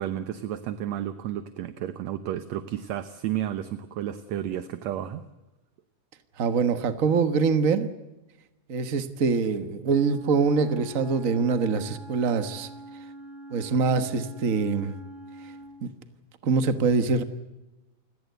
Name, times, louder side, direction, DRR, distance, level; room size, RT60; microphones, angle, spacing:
voice 1, 0.0-5.2, right 11 dB, 70° right, 12 dB, 2.0 m, -32 dB
voice 2, 6.4-7.9 8.7-12.7 13.5-14.9 15.8-15.9 16.4-17.2, right 5 dB, 90° right, 10 dB, 0.7 m, -24 dB
Wind instrument woodwind instrument, 9.8-15.9, right 1 dB, 35° right, 8.5 m, -44 dB
29.0 x 18.0 x 8.0 m, 1.0 s
omnidirectional pair, 3.7 m